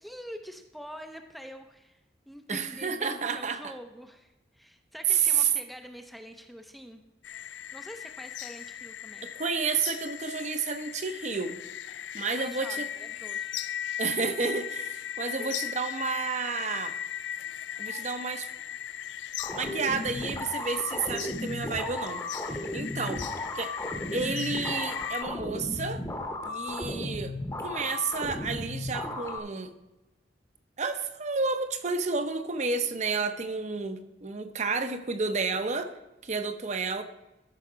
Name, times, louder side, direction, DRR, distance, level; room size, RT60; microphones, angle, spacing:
voice 1, 0.0-7.0 7.7-9.2 12.4-13.5 15.2-15.5 23.0-23.2, equal, ahead, 5 dB, 0.5 m, -45 dB
voice 2, 2.5-3.7 5.1-5.5 9.2-11.6 12.1-12.9 14.0-17.0 17.8-18.5 19.5-22.2 22.7-23.2 23.6-23.7 24.1-26.0 26.4-27.3 27.6-29.7 30.8-35.9 36.2-37.0, right 5 dB, 40° right, 9 dB, 0.7 m, -30 dB
sound 1, 7.2-25.2, left 10 dB, 85° left, 0.4 m, -38 dB
sound 2, 19.4-29.4, left 1 dB, 15° left, 0.9 m, -35 dB
13.0 x 5.7 x 5.0 m, 1.0 s
head